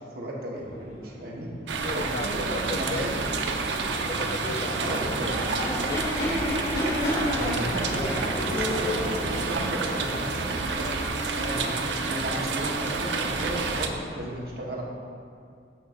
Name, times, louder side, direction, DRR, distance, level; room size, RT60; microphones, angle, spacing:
voice 1, 0.1-1.5 1.9-3.2 4.8-5.3 7.2-14.8, right 1 dB, 60° right, -3 dB, 1.1 m, -34 dB
sound 1, 0.6-14.2, left 1 dB, 80° left, 1.7 m, -33 dB
sound 2, 1.7-13.9, right 4 dB, 85° right, 0.5 m, -30 dB
voice 2, 1.8-3.1 3.9-6.1, left 3 dB, 45° left, 9 dB, 0.3 m, -37 dB
6.6 x 5.9 x 3.6 m, 2.4 s
head